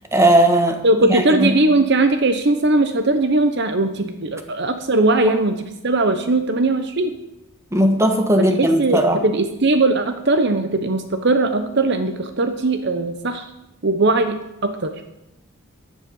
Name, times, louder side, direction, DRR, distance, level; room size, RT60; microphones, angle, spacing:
voice 1, 0.1-0.8 1.1-1.5 7.7-9.2, right 1 dB, 15° right, 5 dB, 1.5 m, -17 dB
voice 2, 0.8-7.1 8.6-13.5 13.8-14.9, right 2 dB, 55° right, 8 dB, 1.0 m, -19 dB
15.5 x 10.5 x 5.5 m, 0.91 s
head